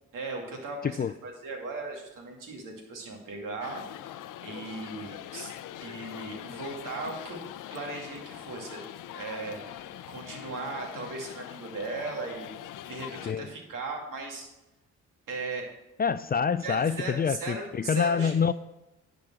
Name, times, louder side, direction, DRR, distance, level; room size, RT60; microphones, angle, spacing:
voice 1, 0.1-3.8 4.4-5.5 5.8-7.4 7.7-8.8 9.1-12.5 12.9-14.5 15.3-15.7 16.6-18.4, right 3 dB, 75° right, 1 dB, 2.4 m, -37 dB
sound 1, 3.6-13.3, left 12 dB, 70° left, 0.6 m, -43 dB
voice 2, 16.0-18.5, left 6 dB, 30° left, 15 dB, 0.4 m, -26 dB
10.5 x 5.1 x 6.1 m, 0.93 s
supercardioid pair, 55°, 32 cm